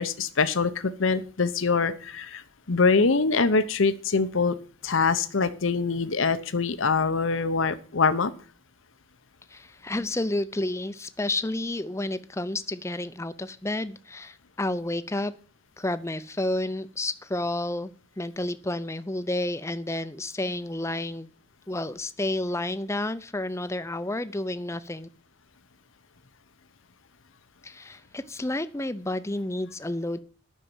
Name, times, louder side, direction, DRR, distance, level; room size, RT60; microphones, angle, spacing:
voice 1, 0.0-2.4 2.7-4.6 4.8-8.3, left 4 dB, 70° left, 11 dB, 0.8 m, -24 dB
voice 2, 9.5-15.3 15.8-17.9 18.2-21.3 21.7-25.1 27.6-30.2, left 1 dB, 15° left, 13 dB, 0.6 m, -30 dB
10.0 x 6.5 x 8.9 m, 0.40 s
head